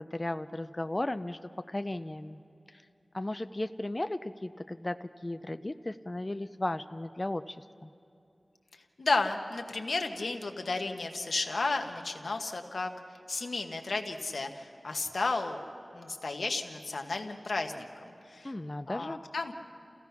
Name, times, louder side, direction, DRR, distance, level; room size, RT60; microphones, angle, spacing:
voice 1, 0.0-2.4 2.7-2.8 3.1-7.9 18.4-19.2, left 1 dB, 30° left, 9 dB, 0.4 m, -35 dB
voice 2, 9.0-12.9 13.3-15.6 15.9-18.5 18.9-19.5, left 3 dB, 90° left, 4 dB, 1.2 m, -33 dB
28.5 x 16.0 x 5.8 m, 2.8 s
wide cardioid pair, 65°, 0 cm